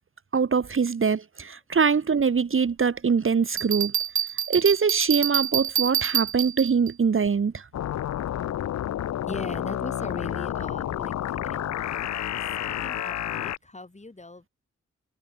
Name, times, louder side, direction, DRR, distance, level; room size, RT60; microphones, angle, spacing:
voice 1, 0.3-3.9 4.5-7.7, right 5 dB, 45° right, 1.0 m, -23 dB
Bell, 3.6-6.9, right 9 dB, 70° right, 0.8 m, -27 dB
sound 1, 7.7-13.6, left 12 dB, 60° left, 0.4 m, -30 dB
voice 2, 9.2-12.1 12.7-14.5, left 2 dB, 20° left, 2.8 m, -39 dB
cardioid pair, 60°, 31 cm